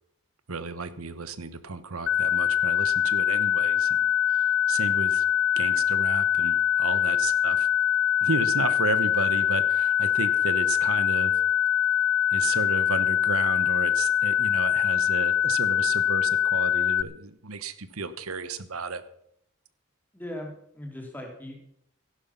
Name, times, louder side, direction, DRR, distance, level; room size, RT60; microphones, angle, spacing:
voice 1, 0.5-5.2 5.6-7.7 8.2-11.3 12.3-19.0, right 4 dB, 85° right, 12 dB, 1.2 m, -33 dB
sound 1, 2.1-17.0, left 9 dB, 70° left, 0.4 m, -23 dB
voice 2, 20.1-21.6, left 1 dB, 10° left, 1 dB, 3.1 m, -39 dB
15.5 x 11.5 x 5.8 m, 0.72 s
head